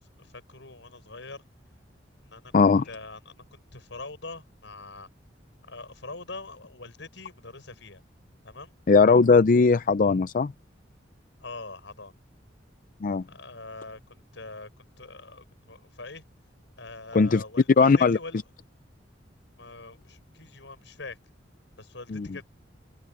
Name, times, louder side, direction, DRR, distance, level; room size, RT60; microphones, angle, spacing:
voice 1, 0.2-1.4 2.2-2.5 2.8-5.1 5.7-8.0 8.4-8.7 11.4-12.1 13.3-16.2 16.8-18.4 19.6-21.2 21.8-22.5, left 3 dB, 80° left, 6.2 m, -43 dB
voice 2, 2.5-2.8 8.9-10.5 13.0-13.2 17.1-17.4 17.8-18.2 22.1-22.3, left 4 dB, 45° left, 0.4 m, -19 dB
open air
head